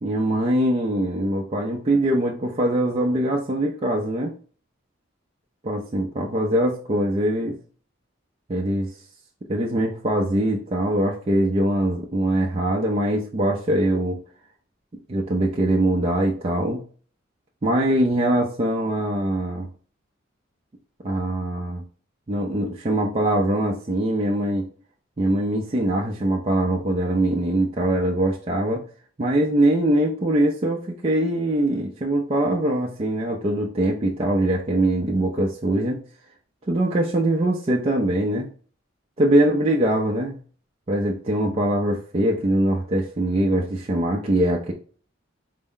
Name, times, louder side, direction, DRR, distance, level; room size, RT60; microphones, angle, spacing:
voice 1, 0.0-4.3 5.6-7.6 8.5-8.9 9.5-14.2 15.1-16.8 17.6-19.7 21.0-21.8 22.3-24.7 25.2-28.8 29.2-36.0 36.7-38.5 39.2-40.4 40.9-44.7, right 1 dB, 30° right, -1 dB, 0.4 m, -22 dB
4.1 x 2.0 x 3.7 m, 0.41 s
head